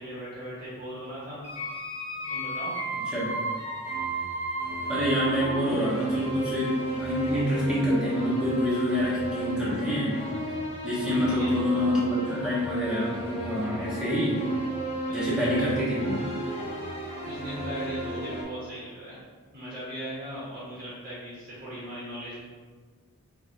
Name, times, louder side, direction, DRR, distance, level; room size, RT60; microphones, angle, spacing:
voice 1, 0.0-1.4 2.3-2.7 11.1-11.6 15.0-15.8 17.1-19.2 19.5-22.4, equal, 50° right, -9 dB, 1.2 m, -38 dB
sound 1, 1.4-18.4, right 1 dB, 30° left, 0.8 m, -33 dB
voice 2, 4.9-10.2 10.8-14.4 15.1-16.2, equal, 5° right, -10 dB, 1.1 m, -27 dB
4.7 x 2.5 x 2.7 m, 1.5 s
head